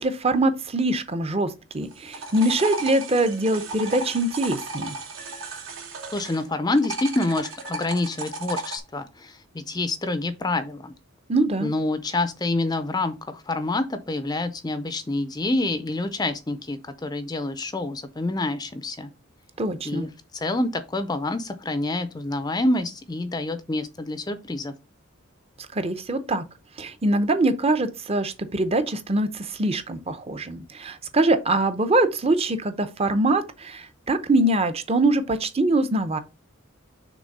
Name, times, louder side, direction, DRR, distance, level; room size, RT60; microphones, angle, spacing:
voice 1, 0.0-5.0 11.3-11.7 19.6-20.1 25.8-26.4 26.8-36.2, right 2 dB, 30° right, 0.7 m, -23 dB
sound 1, 1.8-6.4 6.7-8.8, right 3 dB, 65° right, 2.5 m, -34 dB
voice 2, 6.1-10.9 11.6-19.1 19.8-24.7, left 2 dB, 20° left, 0.5 m, -27 dB
6.2 x 3.6 x 5.4 m
head